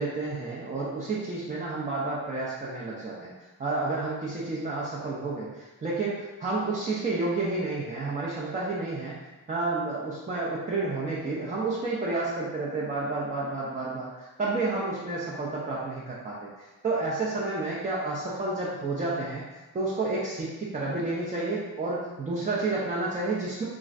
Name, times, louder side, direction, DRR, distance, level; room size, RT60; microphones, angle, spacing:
voice 1, 0.0-3.3 3.6-9.2 9.5-19.4 19.7-23.6, right 3 dB, 20° right, -6 dB, 0.3 m, -30 dB
3.0 x 2.4 x 2.4 m, 1.2 s
wide cardioid pair, 130°, 42 cm